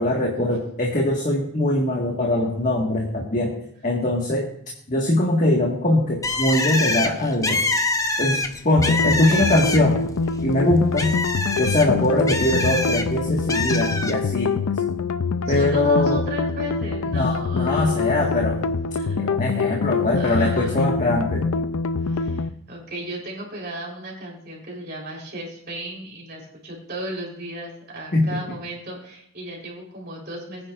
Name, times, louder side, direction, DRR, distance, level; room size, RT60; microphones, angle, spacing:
voice 1, 0.0-3.5 3.8-4.5 4.9-7.6 8.2-10.0 10.4-11.1 11.6-14.7 15.5-16.2 17.1-18.6 19.1-21.5 28.1-28.3, left 1 dB, 35° left, -2 dB, 1.7 m, -22 dB
Bird, 6.2-10.1 10.4-13.0 13.5-14.1, left 2 dB, 15° left, 0.7 m, -25 dB
sound 1, 8.8-22.5, left 4 dB, 85° left, 0.5 m, -25 dB
voice 2, 9.0-9.5 15.5-18.2 19.0-19.2 19.5-19.6 20.0-20.8 22.0-30.7, equal, 45° right, -2 dB, 3.9 m, -35 dB
20.0 x 9.8 x 2.5 m, 0.69 s
head